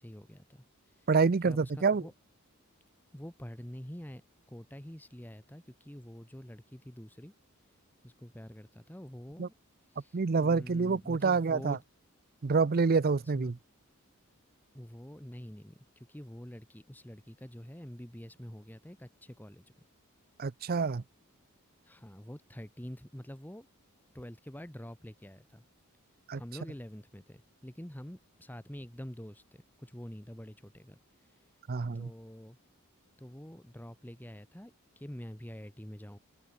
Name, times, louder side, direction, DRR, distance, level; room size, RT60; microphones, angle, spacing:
voice 1, 0.0-1.1 1.4-2.1 3.1-4.2 4.5-7.3 8.0-9.5 9.9-11.8 13.3-13.5 14.7-19.6 21.8-23.7 24.1-25.6 26.3-31.5 31.9-32.6 33.2-36.2, equal, 10° left, 1.3 m, -46 dB
voice 2, 1.1-2.0 9.4-9.5 10.1-11.8 12.4-13.6 20.4-21.0 26.3-26.4 31.7-32.1, right 4 dB, 45° right, 0.5 m, -27 dB
open air
head